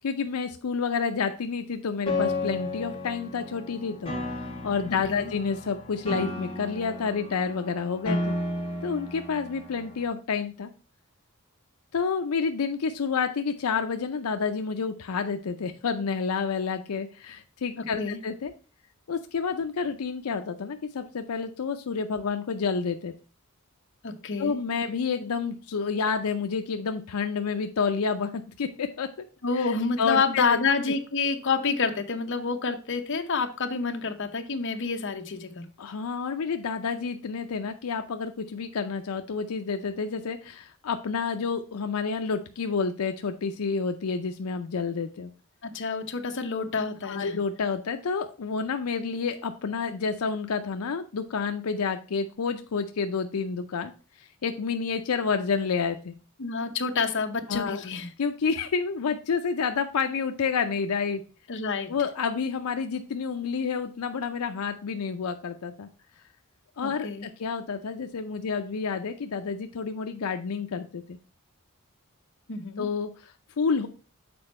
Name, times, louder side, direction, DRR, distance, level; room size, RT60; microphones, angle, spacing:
voice 1, 0.0-4.2 4.6-8.3 8.8-10.7 11.9-18.5 19.1-23.1 24.4-29.1 29.6-30.6 35.8-45.3 47.0-53.9 54.4-56.1 57.5-57.8 58.2-61.2 61.9-65.9 66.8-71.2 72.8-73.9, left 5 dB, 90° left, 7 dB, 0.5 m, -29 dB
Piano, 2.1-10.0, left 2 dB, 25° left, 1.3 m, -33 dB
voice 2, 17.8-18.2 24.0-24.6 29.4-35.6 45.6-47.4 56.4-58.1 61.5-61.9 66.8-67.3 72.5-72.9, left 4 dB, 60° left, 6 dB, 0.8 m, -28 dB
6.9 x 4.3 x 4.2 m, 0.35 s
head